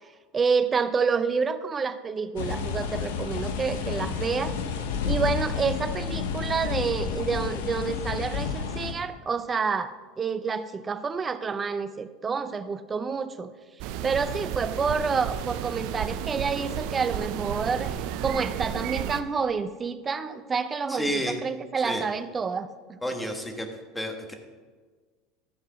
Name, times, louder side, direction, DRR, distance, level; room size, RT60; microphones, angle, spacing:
voice 1, 0.3-4.6 5.0-13.5 14.0-18.0 18.2-23.0, right 5 dB, 25° right, 12 dB, 0.6 m, -28 dB
sound 1, 2.4-8.9, left 5 dB, 85° left, 1.0 m, -30 dB
sound 2, 13.8-19.2, right 10 dB, 65° right, 0.6 m, -32 dB
voice 2, 20.9-21.4 21.8-22.0 23.0-23.7 23.9-24.3, equal, 5° left, 3 dB, 1.5 m, -30 dB
13.0 x 4.8 x 6.2 m, 1.4 s
supercardioid pair, 105°, 0 cm